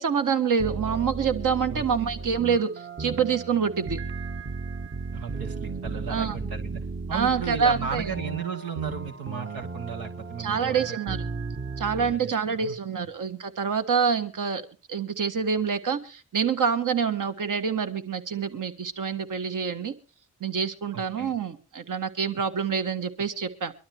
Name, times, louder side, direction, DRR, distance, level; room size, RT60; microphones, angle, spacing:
voice 1, 0.0-2.7 3.0-4.0 6.1-6.4 7.1-8.1 10.4-11.2 11.8-14.6 14.9-19.9 20.4-23.7, right 6 dB, 65° right, 8 dB, 1.6 m, -26 dB
sound 1, 0.6-12.2, right 3 dB, 35° right, 1.1 m, -35 dB
voice 2, 1.7-2.1 5.1-6.8 7.1-11.2 12.0-13.1 20.9-21.3, right 6 dB, 90° right, 4 dB, 1.4 m, -35 dB
23.5 x 12.5 x 2.9 m, 0.33 s
supercardioid pair, 40°, 34 cm